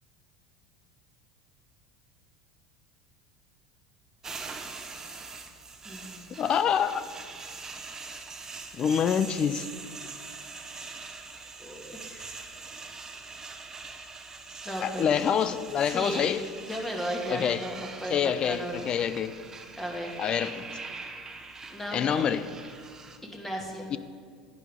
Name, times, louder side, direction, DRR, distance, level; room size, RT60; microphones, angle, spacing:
sound 1, 4.2-23.2, right 4 dB, 20° right, 1.0 m, -43 dB
voice 1, 5.8-6.4 11.6-12.4 14.6-15.1 15.9-16.3 16.6-18.9 19.7-20.2 21.7-22.4 23.3-23.9, equal, 10° left, 0 dB, 2.0 m, -36 dB
voice 2, 6.4-7.0 8.7-9.7 14.8-16.4 17.3-17.7 18.1-19.3 20.2-20.7 21.9-22.5 23.9-24.0, left 8 dB, 35° left, 14 dB, 0.5 m, -26 dB
11.5 x 9.2 x 3.6 m, 2.1 s
hypercardioid pair, 75°, 2 cm